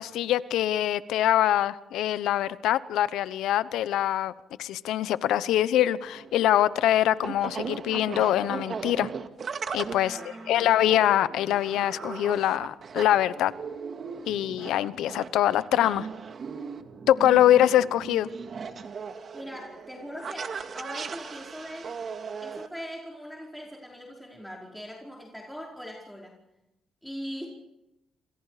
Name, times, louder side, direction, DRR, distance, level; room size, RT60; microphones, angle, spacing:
voice 1, 0.0-4.3 4.6-9.1 9.7-10.2 10.5-13.5 14.3-16.1 17.1-18.3, left 12 dB, 85° left, 16 dB, 0.9 m, -24 dB
sound 1, 6.0-22.7, right 5 dB, 50° right, 2.2 m, -38 dB
voice 2, 10.0-10.8 17.3-17.6 19.3-21.9 22.4-26.4 27.0-27.5, equal, ahead, -2 dB, 5.1 m, -41 dB
28.5 x 26.5 x 5.0 m, 0.91 s
cardioid pair, 90°, 0 cm